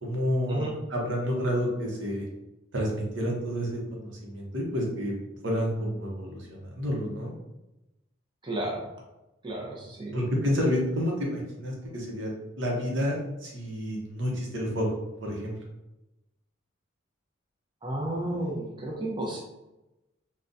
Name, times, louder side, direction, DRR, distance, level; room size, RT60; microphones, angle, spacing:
voice 1, 0.0-2.2 2.7-5.1 5.4-7.3 10.1-12.3 12.6-14.9 15.2-15.6, equal, 70° right, -1 dB, 0.9 m, -29 dB
voice 2, 8.4-8.9 9.4-10.2 17.8-19.4, right 1 dB, 25° right, -2 dB, 0.7 m, -32 dB
3.7 x 2.3 x 2.6 m, 0.96 s
head